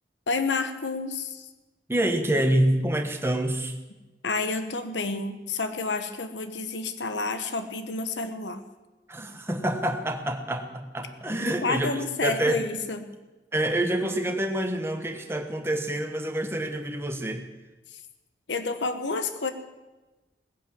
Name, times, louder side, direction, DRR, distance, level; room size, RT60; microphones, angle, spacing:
voice 1, 0.3-1.5 4.2-8.6 11.4-13.1 17.9-18.0 18.5-19.5, left 3 dB, 90° left, 9 dB, 1.1 m, -30 dB
voice 2, 1.9-3.7 9.1-11.9 12.2-12.6 13.5-17.4, right 1 dB, 15° right, 5 dB, 1.4 m, -27 dB
18.0 x 10.5 x 7.5 m, 1.1 s
head